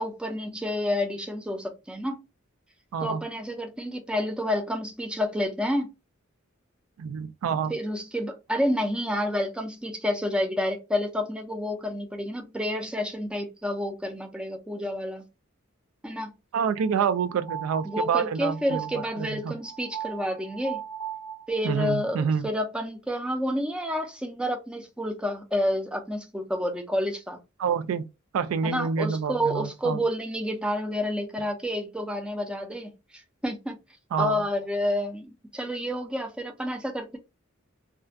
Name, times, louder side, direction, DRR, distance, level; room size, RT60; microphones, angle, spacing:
voice 1, 0.0-2.2 3.0-5.9 7.7-15.2 16.0-16.3 17.8-20.8 21.5-27.4 28.6-32.9 33.4-33.8 34.2-37.2, left 1 dB, 5° right, 0.4 m, -29 dB
voice 2, 7.0-7.7 16.5-19.5 21.6-22.5 27.6-28.1 28.3-30.0 34.1-34.4, right 6 dB, 80° right, 0.3 m, -27 dB
sound 1, 16.8-21.9, right 9 dB, 35° left, 0.7 m, -39 dB
2.4 x 2.1 x 2.5 m
head